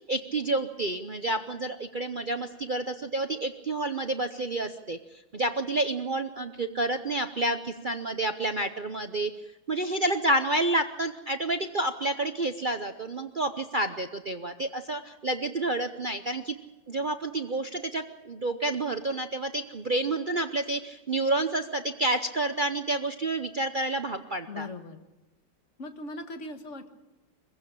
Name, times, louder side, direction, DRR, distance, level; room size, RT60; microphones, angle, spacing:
voice 1, 0.1-5.0 5.3-9.3 9.7-16.5 16.9-24.7, right 2 dB, 60° right, 7 dB, 0.5 m, -29 dB
voice 2, 24.5-25.1 25.8-26.9, left 2 dB, 40° left, 6 dB, 1.9 m, -39 dB
23.5 x 15.5 x 8.7 m, 1.1 s
omnidirectional pair, 2.1 m